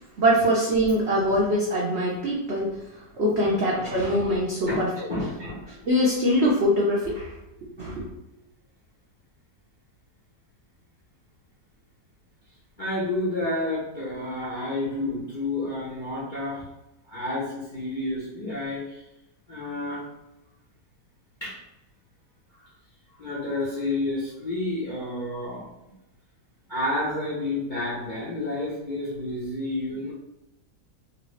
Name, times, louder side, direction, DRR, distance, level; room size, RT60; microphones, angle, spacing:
voice 1, 0.2-2.7 3.2-5.1 5.8-7.3 7.8-8.1, equal, 70° right, -4 dB, 0.6 m, -23 dB
voice 2, 3.4-4.1 4.6-5.6 12.8-16.6 17.1-18.8 19.5-20.0 21.4-21.6 23.2-25.7 26.7-30.1, left 2 dB, 50° left, -8 dB, 0.6 m, -30 dB
3.2 x 2.6 x 3.1 m, 0.93 s
omnidirectional pair, 1.9 m